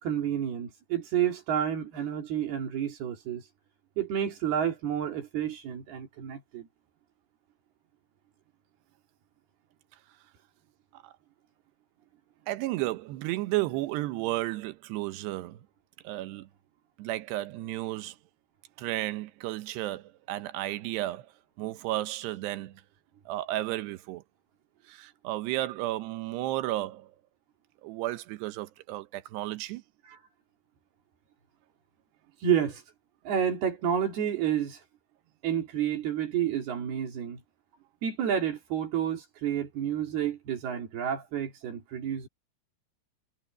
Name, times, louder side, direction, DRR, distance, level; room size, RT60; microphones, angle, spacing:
voice 1, 0.0-3.4 4.0-6.7 30.1-30.2 32.4-32.8 33.2-34.8 35.4-37.4 38.0-42.3, right 9 dB, 70° right, 4.8 m, -30 dB
voice 2, 12.5-15.7 16.0-16.5 17.0-18.2 18.8-21.3 21.6-22.8 23.3-24.2 24.9-27.1 27.8-29.8, right 16 dB, 90° right, 3.1 m, -33 dB
omnidirectional pair, 4.7 m